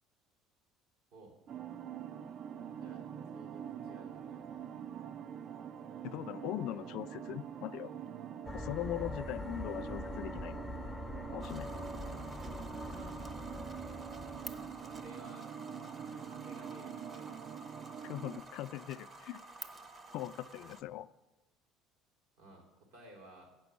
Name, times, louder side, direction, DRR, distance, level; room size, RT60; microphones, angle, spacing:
sound 1, 1.5-18.4, right 8 dB, 45° right, 0.3 m, -45 dB
voice 1, 2.7-3.0 3.3-4.8 6.6-6.9 12.9-13.3 14.9-15.5 16.0-17.7 22.4-23.5, right 1 dB, 85° right, -2 dB, 2.9 m, -56 dB
voice 2, 6.0-7.9 8.5-10.6 11.3-11.7 18.0-19.4 20.1-21.1, left 14 dB, 70° left, 14 dB, 0.3 m, -40 dB
sound 2, 8.4-15.1, left 2 dB, 10° left, 0.5 m, -44 dB
sound 3, 11.4-20.8, right 2 dB, 25° right, 0.7 m, -51 dB
8.5 x 6.0 x 8.1 m, 1.1 s
cardioid pair, 120°, 0 cm